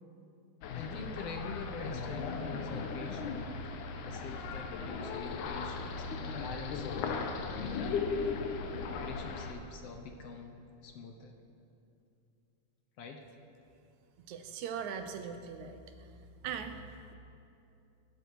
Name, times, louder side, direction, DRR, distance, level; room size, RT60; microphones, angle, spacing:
sound 1, 0.6-9.5, left 4 dB, 85° left, 2.5 m, -37 dB
voice 1, 0.7-8.3 8.9-11.4 13.0-13.3, left 4 dB, 65° left, 4 dB, 1.9 m, -45 dB
voice 2, 14.3-15.8 16.4-17.2, right 7 dB, 75° right, 7 dB, 2.2 m, -40 dB
23.0 x 12.0 x 4.8 m, 2.7 s
omnidirectional pair, 3.4 m